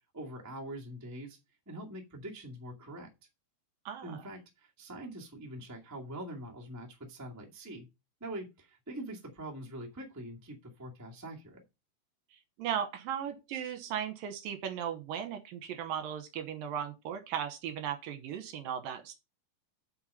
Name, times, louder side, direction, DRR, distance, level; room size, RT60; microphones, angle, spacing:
voice 1, 0.1-1.4 1.6-3.1 4.0-7.9 8.2-11.6, right 1 dB, 10° right, 0.8 m, -44 dB
voice 2, 3.9-4.2 12.6-19.2, right 9 dB, 75° right, 2.6 m, -37 dB
7.9 x 5.5 x 5.5 m
omnidirectional pair, 4.4 m